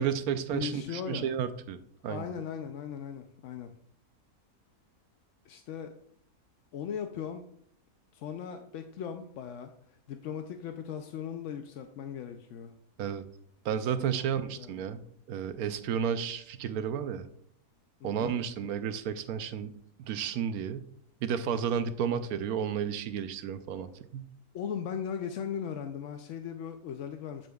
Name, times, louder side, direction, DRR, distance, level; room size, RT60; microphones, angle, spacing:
voice 1, 0.0-1.8 2.0-2.3 13.0-13.2 13.6-15.0 15.3-17.3 18.0-19.7 20.0-20.9 21.2-24.3, right 8 dB, 75° right, 11 dB, 1.1 m, -32 dB
voice 2, 0.5-1.3 2.0-3.7 5.5-5.9 6.7-7.4 8.1-12.7 13.9-14.8 18.0-18.3 24.5-27.5, left 8 dB, 65° left, 6 dB, 0.8 m, -38 dB
8.8 x 7.9 x 2.3 m, 0.66 s
omnidirectional pair, 1.6 m